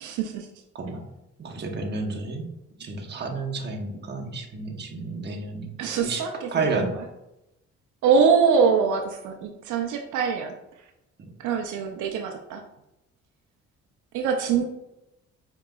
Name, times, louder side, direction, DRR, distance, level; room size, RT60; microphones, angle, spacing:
voice 1, 0.0-0.5 5.8-7.0 8.0-10.5 11.4-12.6 14.1-14.6, right 6 dB, 80° right, 3 dB, 0.5 m, -23 dB
voice 2, 1.4-2.5 2.8-5.7 6.0-6.3 6.5-6.9, right 3 dB, 35° right, 2 dB, 0.8 m, -30 dB
4.8 x 2.9 x 2.2 m, 0.88 s
cardioid pair, 90°, 30 cm